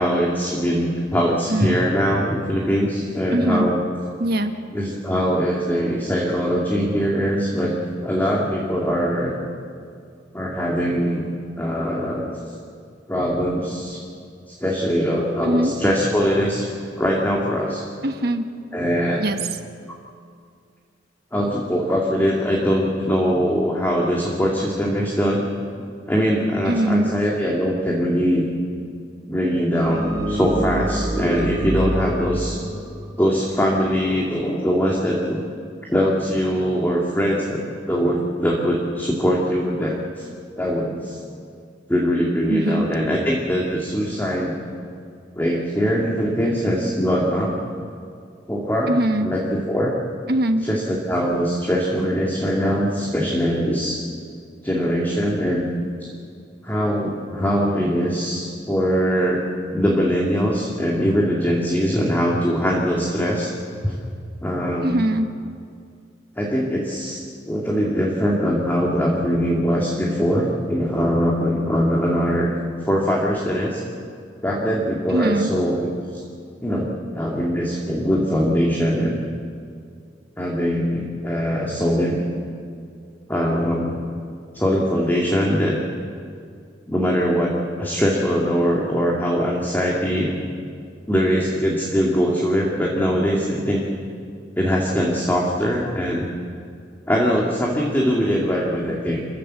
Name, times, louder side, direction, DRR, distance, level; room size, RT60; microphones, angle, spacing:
voice 1, 0.0-3.8 4.7-7.7 8.0-9.3 10.3-11.3 11.6-12.4 13.1-14.0 14.6-16.6 17.0-17.8 18.7-19.2 21.3-25.5 26.1-28.5 29.3-32.6 33.2-35.4 35.9-37.6 37.9-40.3 40.6-41.2 41.9-44.5 45.4-47.5 48.5-49.9 50.6-54.0 54.6-55.7 56.0-56.1 56.6-59.5 59.7-63.5 63.8-63.9 64.4-65.0 66.4-72.5 72.9-73.8 74.4-75.9 76.6-79.2 80.4-82.2 83.3-84.0 84.5-85.7 86.9-90.3 91.1-93.8 94.6-96.3 97.1-99.2, equal, 10° left, -3 dB, 2.3 m, -22 dB
voice 2, 3.3-3.7 4.2-4.5 15.4-15.7 18.0-18.5 19.2-19.4 26.7-27.1 42.5-42.9 48.9-49.3 50.3-50.7 64.8-65.3 75.1-75.5, right 1 dB, 55° right, 7 dB, 1.4 m, -21 dB
sound 1, 29.8-34.2, equal, 20° right, 2.2 m, -27 dB
27.5 x 15.0 x 7.5 m, 2.3 s
head